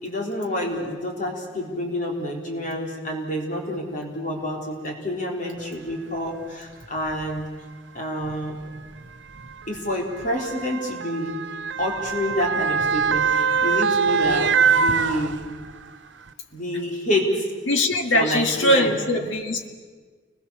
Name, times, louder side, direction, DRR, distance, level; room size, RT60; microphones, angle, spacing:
voice 1, 0.0-7.4 7.9-8.5 9.7-11.3 11.8-15.4 16.5-17.4 18.1-18.9, left 1 dB, 40° left, 0 dB, 3.9 m, -28 dB
Motor vehicle (road) / Siren, 5.9-6.0 7.0-7.2 8.2-15.8 16.3-16.4, right 6 dB, 70° right, 0.7 m, -24 dB
voice 2, 17.7-19.7, left 1 dB, 90° left, 4 dB, 2.0 m, -21 dB
29.5 x 22.0 x 7.1 m, 1.5 s
head